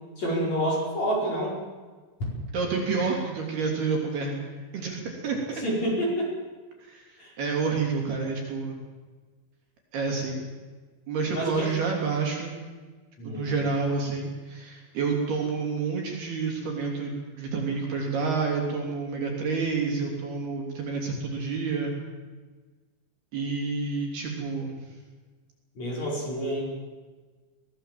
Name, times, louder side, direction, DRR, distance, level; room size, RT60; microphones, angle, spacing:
voice 1, 0.2-1.5 5.6-6.3 7.2-7.3 11.3-11.5 13.2-13.5 25.8-26.6, right 1 dB, 35° left, -3 dB, 5.9 m, -28 dB
voice 2, 2.5-4.4 4.7-5.4 6.8-8.8 9.9-10.4 11.1-12.5 13.2-22.0 23.3-24.8, right 4 dB, 55° right, 0 dB, 4.6 m, -29 dB
22.5 x 16.5 x 7.6 m, 1.4 s
omnidirectional pair, 5.9 m